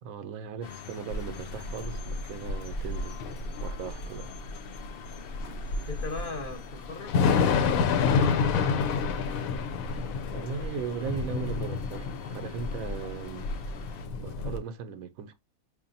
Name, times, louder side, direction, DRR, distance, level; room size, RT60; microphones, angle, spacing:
voice 1, 0.0-3.2 3.6-4.3 10.3-13.5 14.2-15.3, right 7 dB, 80° right, 1.0 m, -38 dB
sound 1, 0.6-14.1, left 6 dB, 60° left, 0.6 m, -45 dB
Thunder / Rain, 1.1-14.6, left 5 dB, 80° left, 1.0 m, -29 dB
voice 2, 5.9-9.0, left 3 dB, 45° left, 1.0 m, -39 dB
4.8 x 2.6 x 2.6 m
omnidirectional pair, 1.5 m